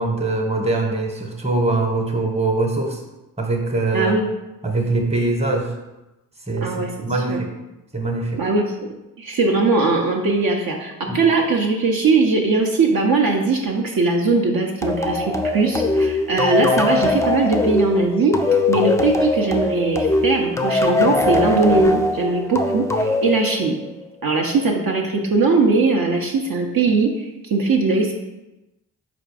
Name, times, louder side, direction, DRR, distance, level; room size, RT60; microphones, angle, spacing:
voice 1, 0.0-3.0 3.4-4.2 4.6-5.7 6.5-7.5 7.9-8.4 11.1-11.2, right 2 dB, 15° right, 2 dB, 1.0 m, -22 dB
voice 2, 3.9-4.2 6.6-7.4 8.4-8.6 9.2-23.8 24.2-28.1, right 3 dB, 55° right, 0 dB, 0.7 m, -20 dB
sound 1, 14.8-24.1, left 2 dB, 10° left, 0.4 m, -21 dB
4.2 x 2.5 x 4.8 m, 0.98 s
cardioid pair, 45°, 41 cm